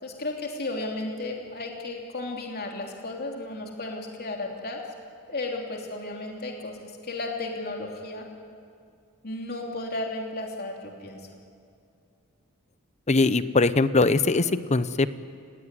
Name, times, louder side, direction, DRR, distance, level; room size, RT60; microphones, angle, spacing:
voice 1, 0.0-4.8 5.3-8.2 9.2-11.3, left 2 dB, 45° left, 1 dB, 3.1 m, -34 dB
voice 2, 13.1-15.1, left 3 dB, 30° left, 13 dB, 0.8 m, -21 dB
30.0 x 17.5 x 9.9 m, 2.4 s
head